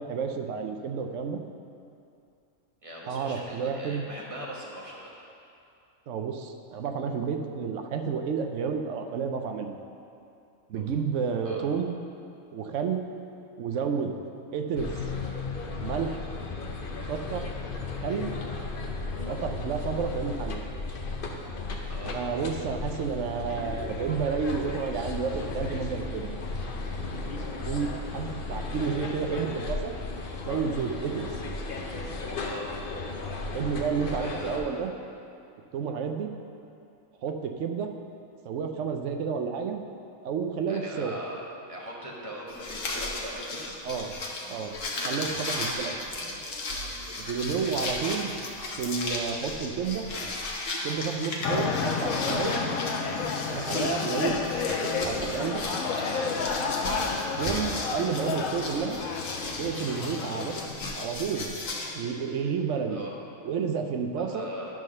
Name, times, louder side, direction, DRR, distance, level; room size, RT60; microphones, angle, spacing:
voice 1, 0.0-1.4 3.1-4.1 6.1-9.7 10.7-12.0 12.5-13.0 13.6-14.1 14.5-14.9 15.8-16.2 17.1-17.5 18.0-18.3 19.2-20.6 22.1-26.4 27.7-29.9 30.5-31.3 33.5-34.9 35.7-36.3 37.2-37.9 38.4-39.8 40.2-41.1 43.8-44.1 44.5-44.7 45.0-46.0 47.2-48.3 48.8-50.1 50.8-52.6 53.5-54.4 54.8-55.6 57.3-59.0 59.6-60.6 60.9-61.6 61.9-63.0 63.4-64.5, right 6 dB, 65° right, 4 dB, 0.9 m, -30 dB
voice 2, 2.8-5.1 10.7-10.9 11.4-11.6 21.9-22.2 25.3-25.8 32.4-32.7 34.2-34.8 40.7-41.4 41.7-43.7 46.0-46.5 47.6-47.9 55.9-56.3 62.9-63.1 64.2-64.7, equal, 25° right, -4 dB, 1.2 m, -41 dB
sound 1, 14.8-34.6, left 3 dB, 50° left, 0.8 m, -35 dB
sound 2, 42.5-61.9, left 2 dB, 65° left, 1.4 m, -35 dB
sound 3, 51.4-60.7, left 5 dB, 85° left, 1.1 m, -30 dB
11.0 x 3.7 x 6.4 m, 2.6 s
omnidirectional pair, 1.4 m